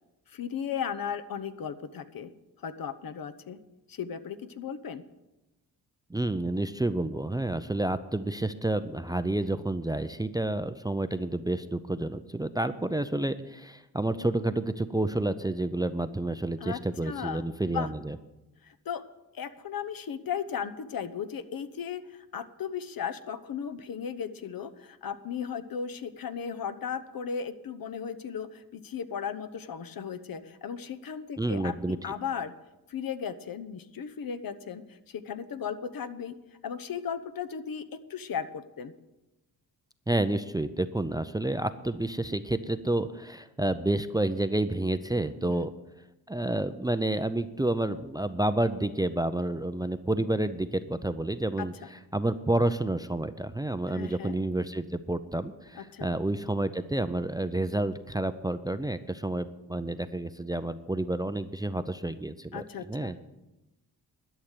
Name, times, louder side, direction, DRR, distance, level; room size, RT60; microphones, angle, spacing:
voice 1, 0.3-2.3 2.6-3.6 3.9-5.0 16.6-17.9 18.6-19.0 19.3-32.5 32.9-36.3 36.6-38.9 45.4-45.7 51.6-51.7 53.9-54.4 55.7-56.2 62.5-63.3, left 7 dB, 60° left, 11 dB, 0.9 m, -36 dB
voice 2, 6.1-18.2 31.4-32.0 40.1-45.7 46.3-51.7 52.1-63.1, right 1 dB, 10° right, 12 dB, 0.5 m, -29 dB
12.0 x 6.5 x 9.1 m, 1.0 s
cardioid pair, 75°, 40 cm